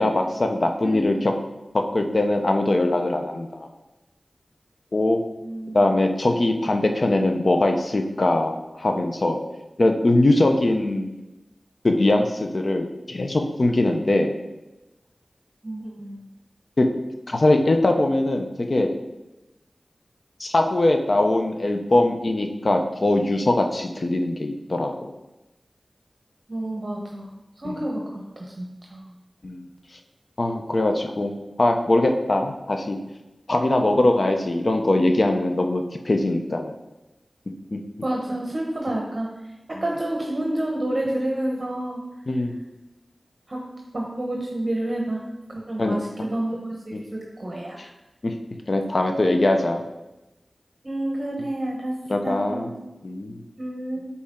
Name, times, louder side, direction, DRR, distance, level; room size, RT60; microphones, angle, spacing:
voice 1, 0.0-1.3 1.7-3.7 4.9-5.2 5.7-9.4 9.8-11.1 11.8-14.4 16.8-16.9 17.3-18.9 20.4-25.1 27.6-27.8 29.4-29.6 30.4-31.3 31.6-33.0 33.5-36.7 37.7-37.8 42.3-42.6 45.8-46.0 48.2-48.3 48.7-49.8 52.1-52.7 53.0-53.4, left 2 dB, 55° left, 4 dB, 0.7 m, -21 dB
voice 2, 0.8-1.1 5.4-5.8 15.6-16.3 26.5-29.1 38.0-39.3 39.7-42.0 43.5-43.6 43.9-45.2 45.5-46.6 46.9-47.8 50.8-52.0 52.2-52.8 53.6-54.0, right 1 dB, 45° right, -1 dB, 1.0 m, -29 dB
8.6 x 4.3 x 3.7 m, 1.0 s
wide cardioid pair, 55°, 0 cm